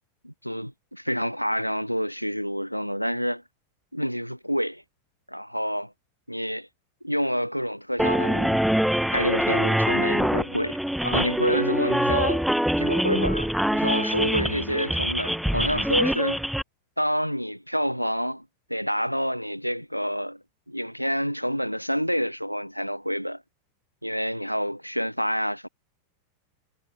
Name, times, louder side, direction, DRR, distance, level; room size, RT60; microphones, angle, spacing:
voice 1, 0.2-3.4 3.9-4.8 5.3-5.9 6.3-6.7 7.0-8.6 9.1-10.8 11.0-12.5 12.8-16.4 17.0-18.4 18.7-20.4 20.7-23.4 24.0-25.7, equal, 90° left, 0.5 m, -28 dB
sound 1, 8.0-16.6, equal, ahead, 1.2 m, -24 dB
figure-of-eight pair, 90°, 0 cm